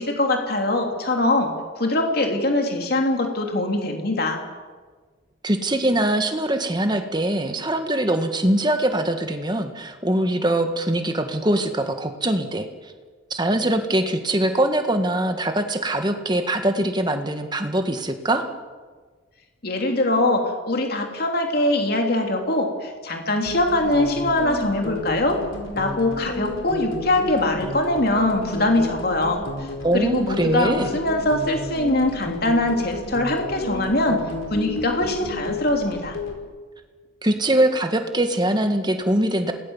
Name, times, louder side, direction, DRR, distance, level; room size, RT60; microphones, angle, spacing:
voice 1, 0.0-1.5 1.8-4.4 19.6-25.4 25.7-29.7 29.9-34.2 34.5-36.2, left 1 dB, 50° left, 3 dB, 3.1 m, -22 dB
voice 2, 5.4-12.7 13.3-18.4 29.8-30.9 37.2-39.5, right 1 dB, 20° right, 6 dB, 1.7 m, -22 dB
sound 1, 23.5-36.4, left 2 dB, 80° left, 4.5 m, -32 dB
27.5 x 19.0 x 7.3 m, 1.5 s
head